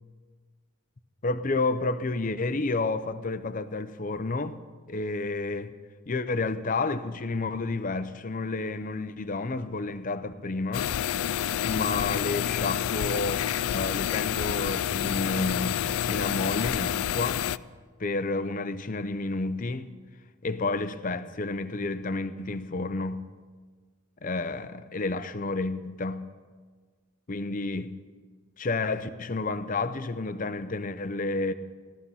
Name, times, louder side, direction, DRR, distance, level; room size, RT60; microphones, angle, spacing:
voice 1, 1.2-4.6 4.9-5.7 6.1-10.9 11.6-17.5 18.0-19.9 20.4-23.3 24.2-26.3 27.3-28.0 28.6-31.5, left 3 dB, 35° left, 0.6 m, -30 dB
sound 1, 10.7-17.6, left 10 dB, 75° left, 0.3 m, -28 dB
16.0 x 13.0 x 5.6 m
head